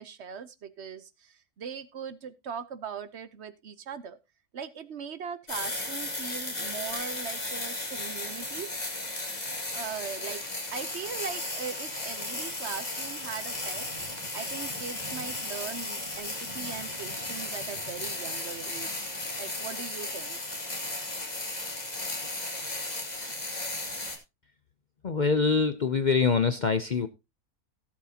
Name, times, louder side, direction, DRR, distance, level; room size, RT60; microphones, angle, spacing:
voice 1, 0.0-4.2 4.5-8.7 9.7-10.4 10.7-19.0 19.4-20.4, right 7 dB, 55° right, 1.0 m, -40 dB
sound 1, 5.5-24.2, left 2 dB, 30° left, 2.3 m, -35 dB
voice 2, 25.0-27.1, left 5 dB, 50° left, 0.5 m, -24 dB
17.0 x 7.5 x 2.8 m
omnidirectional pair, 1.6 m